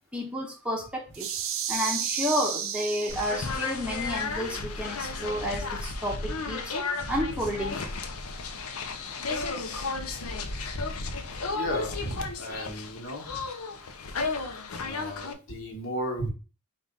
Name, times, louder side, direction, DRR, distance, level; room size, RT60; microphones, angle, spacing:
voice 1, 0.1-1.4 1.7-6.7 7.1-7.8, equal, 5° right, -1 dB, 0.7 m, -31 dB
sound 1, 1.1-3.7, right 8 dB, 65° right, 0.6 m, -32 dB
sound 2, 3.1-15.3, left 3 dB, 80° left, 0.7 m, -33 dB
voice 2, 11.5-13.4 14.8-16.3, equal, 60° left, 1 dB, 1.3 m, -34 dB
4.9 x 2.4 x 3.9 m, 0.33 s
head